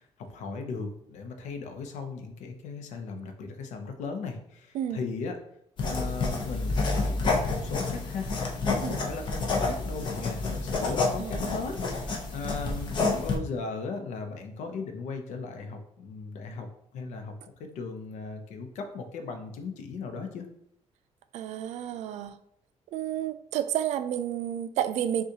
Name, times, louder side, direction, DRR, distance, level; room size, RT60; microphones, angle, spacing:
voice 1, 0.0-5.4 5.8-8.3 8.6-11.8 12.0-16.7 16.9-17.3 17.7-20.5, left 4 dB, 90° left, 5 dB, 0.7 m, -37 dB
sound 1, 5.8-13.4, left 3 dB, 40° left, 0.7 m, -29 dB
voice 2, 11.2-11.7 21.3-22.3 22.9-25.2, right 10 dB, 75° right, 11 dB, 0.4 m, -31 dB
6.4 x 2.4 x 2.8 m, 0.74 s
cardioid pair, 160°, 12 cm